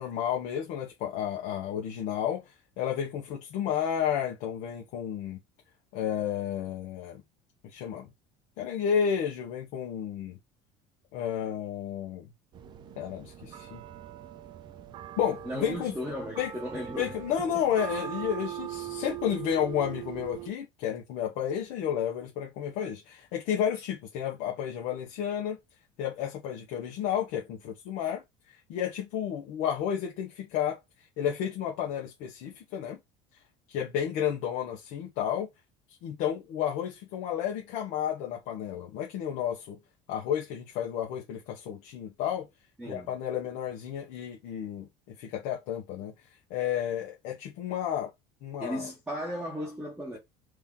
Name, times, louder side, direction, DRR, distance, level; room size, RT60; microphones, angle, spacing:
voice 1, 0.0-2.4 2.8-5.4 5.9-7.2 7.6-8.1 8.6-10.4 11.1-12.3 13.0-13.8 15.2-15.9 16.4-16.5 17.0-25.6 26.0-28.2 28.7-30.8 31.2-33.0 33.7-35.5 36.0-39.8 40.1-42.5 42.8-46.1 46.5-48.1 48.4-48.9, left 9 dB, 65° left, 0.9 m, -31 dB
sound 1, 12.5-20.5, right 11 dB, 30° right, 0.4 m, -41 dB
voice 2, 15.4-17.1 42.8-43.2 48.6-50.2, equal, 5° right, 1.0 m, -36 dB
3.1 x 2.8 x 3.6 m
cardioid pair, 155°, 15 cm